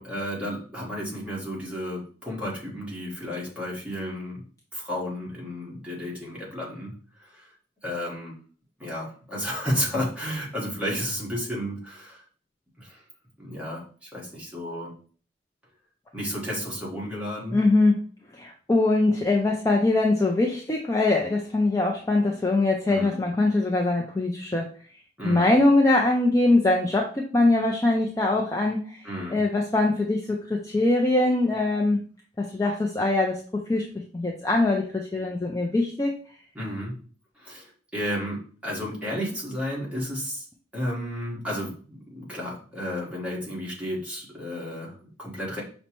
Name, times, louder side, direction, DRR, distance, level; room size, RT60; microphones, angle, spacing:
voice 1, 0.0-4.4 4.7-6.9 7.2-7.5 7.8-8.4 8.8-12.2 12.8-13.0 13.4-14.9 16.1-17.6 22.9-23.2 25.2-25.6 29.0-29.4 36.5-36.9 37.3-40.4 40.7-45.6, equal, 5° right, -5 dB, 1.2 m, -32 dB
voice 2, 17.5-18.0 18.3-24.7 25.2-29.0 29.3-32.0 32.4-33.8 34.1-36.1, left 2 dB, 15° left, -1 dB, 0.3 m, -22 dB
5.4 x 2.1 x 2.9 m, 0.42 s
head